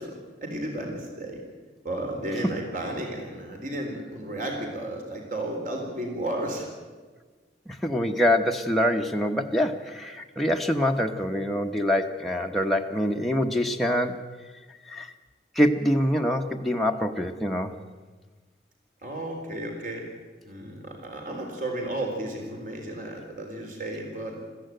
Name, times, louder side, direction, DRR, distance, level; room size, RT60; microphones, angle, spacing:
voice 1, 0.0-1.4 1.8-6.7 19.0-20.0 20.4-24.4, right 1 dB, 50° right, 2 dB, 4.0 m, -33 dB
voice 2, 7.7-14.2 14.9-15.1 15.5-17.7, equal, ahead, 0 dB, 1.0 m, -25 dB
21.0 x 15.0 x 9.1 m, 1.4 s
head